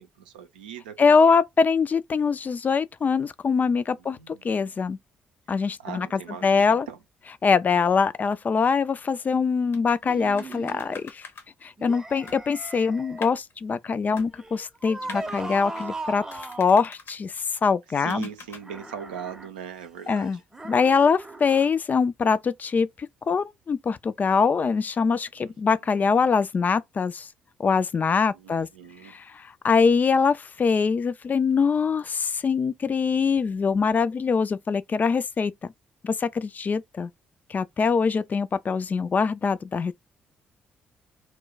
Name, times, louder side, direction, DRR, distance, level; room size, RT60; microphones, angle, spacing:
voice 1, 0.0-1.4 3.9-4.8 5.8-7.0 15.0-15.9 18.0-20.4 25.4-25.5 28.3-29.2, right 8 dB, 80° right, 0.4 m, -41 dB
voice 2, 1.0-5.0 5.5-6.9 7.4-11.2 11.6-18.3 20.1-20.4 20.6-22.9 23.3-27.3 27.6-28.7 29.0-35.5 36.0-37.1 37.5-39.9, left 5 dB, 35° left, 0.3 m, -23 dB
sound 1, 9.7-10.0 10.4-11.4 12.0-12.1 12.3-13.5 14.2-14.7 15.0-15.2 16.3-17.2 18.1-18.6, left 5 dB, 55° left, 0.7 m, -43 dB
sound 2, 10.0-11.0 11.8-13.4 14.3-16.7 18.6-19.5 20.5-21.7, right 2 dB, 10° right, 0.6 m, -38 dB
2.2 x 2.1 x 3.8 m
figure-of-eight pair, 45°, 5 cm